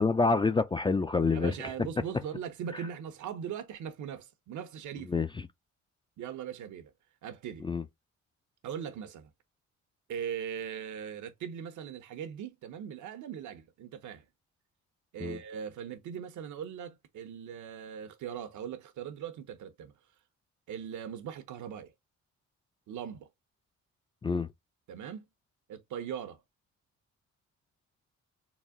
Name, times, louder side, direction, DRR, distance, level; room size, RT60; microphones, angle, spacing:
voice 1, 0.0-1.5 2.7-2.8 5.1-5.3 7.6-7.8 15.2-15.4 24.2-24.5, left 4 dB, 15° left, 0.3 m, -27 dB
voice 2, 1.3-5.2 6.2-6.9 7.2-7.7 8.6-9.3 10.1-14.2 15.1-19.9 20.7-21.9 22.9-23.3 24.9-25.2 25.7-26.4, right 8 dB, 75° right, 0.9 m, -40 dB
4.0 x 2.2 x 3.6 m
cardioid pair, 90°, 30 cm